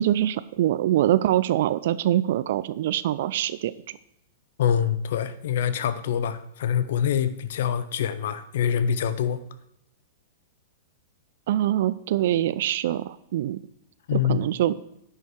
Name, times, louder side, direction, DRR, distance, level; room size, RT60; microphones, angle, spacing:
voice 1, 0.0-4.0 11.5-13.6 14.1-14.7, right 12 dB, 55° right, 15 dB, 0.3 m, -24 dB
voice 2, 4.6-9.4 14.1-14.4, left 8 dB, 55° left, 14 dB, 0.7 m, -25 dB
10.5 x 5.7 x 4.6 m, 0.79 s
figure-of-eight pair, 100°, 0 cm